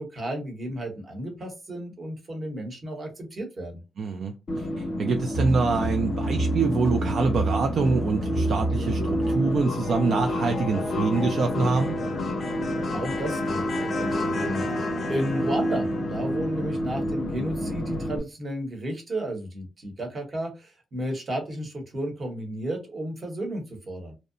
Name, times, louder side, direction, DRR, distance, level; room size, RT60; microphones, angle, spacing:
voice 1, 0.0-3.8 12.9-14.8 15.1-24.1, right 1 dB, 30° right, 0.9 m, -33 dB
voice 2, 4.0-12.0, right 4 dB, 55° right, 0.3 m, -25 dB
sound 1, 4.5-18.2, left 1 dB, 40° left, 0.5 m, -29 dB
sound 2, 5.3-9.5, right 2 dB, 5° right, 0.9 m, -29 dB
2.7 x 2.1 x 2.5 m
wide cardioid pair, 160°, 0 cm